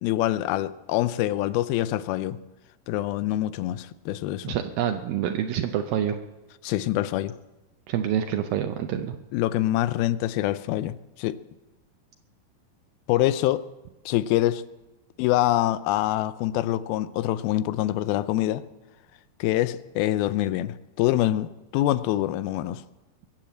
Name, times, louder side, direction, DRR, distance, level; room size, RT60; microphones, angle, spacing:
voice 1, 0.0-2.4 2.9-4.6 6.6-7.3 9.3-11.4 13.1-13.6 14.1-14.6 15.2-18.6 19.4-22.8, left 14 dB, 90° left, 15 dB, 2.5 m, -25 dB
voice 2, 4.4-6.2 7.9-9.2, right 10 dB, 80° right, 6 dB, 2.4 m, -27 dB
22.5 x 7.5 x 7.6 m, 1.1 s
omnidirectional pair, 4.2 m